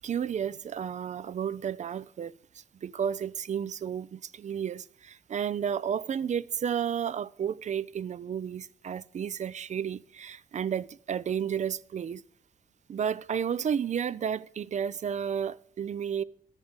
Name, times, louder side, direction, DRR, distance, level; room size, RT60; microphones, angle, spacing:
voice 1, 0.0-2.3 2.8-12.2 12.9-16.2, right 8 dB, 45° right, 0.4 m, -32 dB
12.5 x 5.3 x 7.2 m
wide cardioid pair, 150°, 17 cm